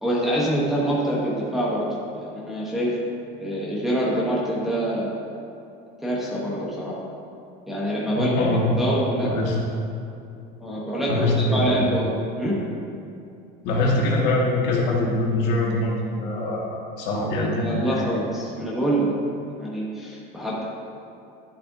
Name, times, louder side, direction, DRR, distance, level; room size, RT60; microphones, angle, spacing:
voice 1, 0.0-1.9 2.1-3.0 3.4-5.2 6.0-7.0 7.7-9.3 10.6-12.6 17.1-19.2 19.5-20.6, right 1 dB, ahead, -7 dB, 1.0 m, -25 dB
voice 2, 8.2-8.7 9.2-9.6 11.1-11.9 13.6-18.0, left 2 dB, 60° left, -3 dB, 1.8 m, -23 dB
11.0 x 7.4 x 2.7 m, 2.7 s
cardioid pair, 175°, 20 cm